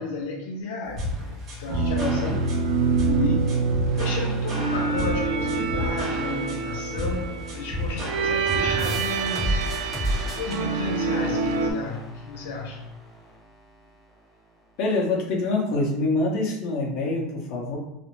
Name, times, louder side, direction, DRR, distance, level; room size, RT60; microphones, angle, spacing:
voice 1, 0.0-9.7 10.4-12.9, left 3 dB, 85° left, 0.4 m, -33 dB
sound 1, 1.0-9.0, equal, 30° right, 0.6 m, -32 dB
sound 2, 1.7-11.7, right 4 dB, 80° right, 0.3 m, -26 dB
voice 2, 1.9-2.3 14.8-17.8, left 2 dB, 50° left, 0.8 m, -25 dB
sound 3, 8.8-14.2, equal, 10° left, 0.7 m, -33 dB
2.4 x 2.0 x 3.0 m
supercardioid pair, 155°, 0 cm